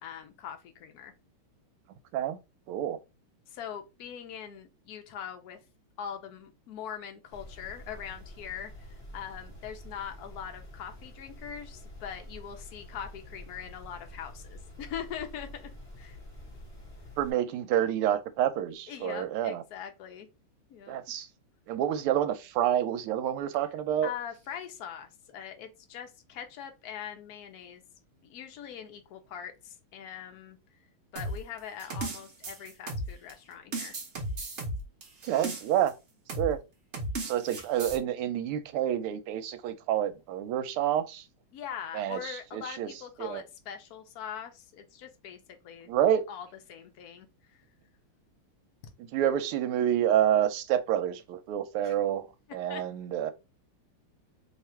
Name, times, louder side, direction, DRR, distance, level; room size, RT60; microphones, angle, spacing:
voice 1, 0.0-1.1 3.5-5.6 6.0-15.7 16.0-16.2 18.9-20.3 20.7-21.0 24.0-27.8 28.2-30.6 31.1-34.0 41.5-45.4 45.6-45.9 46.3-47.3 51.8-51.9 52.7-52.8, left 8 dB, 75° left, 0.8 m, -42 dB
voice 2, 2.7-3.0 17.2-19.6 20.9-21.3 21.7-24.1 35.2-35.9 36.4-36.6 37.2-41.2 41.9-42.9 43.2-43.4 45.9-46.2 49.1-53.3, right 10 dB, 85° right, 1.5 m, -28 dB
sound 1, 7.3-17.3, left 1 dB, 20° left, 0.9 m, -47 dB
sound 2, 31.2-33.3 33.7-35.9 36.3-36.5 36.9-38.0, right 2 dB, 50° right, 0.8 m, -35 dB
3.4 x 2.4 x 4.3 m
omnidirectional pair, 2.4 m